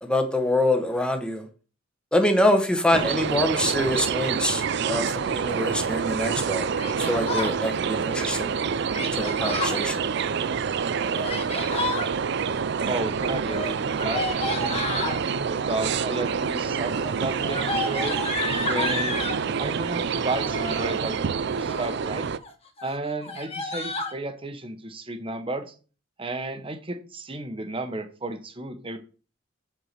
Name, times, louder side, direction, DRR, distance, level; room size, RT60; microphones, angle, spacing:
voice 1, 0.0-1.5 2.1-6.7 7.0-8.6 9.1-10.0, left 1 dB, 5° left, 1.1 m, -25 dB
sound 1, 2.9-22.4, right 6 dB, 55° right, 0.4 m, -27 dB
Yell, 6.8-7.6 8.9-9.8 11.0-12.1 13.4-15.2 16.0-16.5 16.8-19.4 20.3-20.9 21.5-22.0 22.4-22.5 22.8-22.9 23.2-24.1, left 3 dB, 30° left, 1.2 m, -31 dB
voice 2, 12.9-18.2 18.7-19.3 19.6-21.1 21.6-22.3 22.8-25.7 26.2-29.0, right 2 dB, 25° right, 1.1 m, -33 dB
7.8 x 4.8 x 6.7 m
head